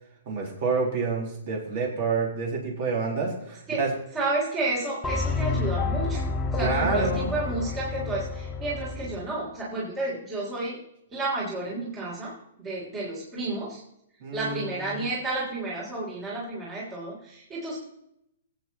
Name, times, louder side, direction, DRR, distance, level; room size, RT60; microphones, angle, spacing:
voice 1, 0.3-3.9 6.6-7.5 14.2-15.0, right 4 dB, 40° right, -1 dB, 4.1 m, -28 dB
voice 2, 4.1-10.8 11.1-13.8 14.3-17.8, right 2 dB, 15° right, -6 dB, 3.3 m, -31 dB
sound 1, 5.0-9.2, left 4 dB, 10° left, 1.3 m, -29 dB
22.0 x 8.6 x 3.0 m, 0.78 s
hypercardioid pair, 170°, 0 cm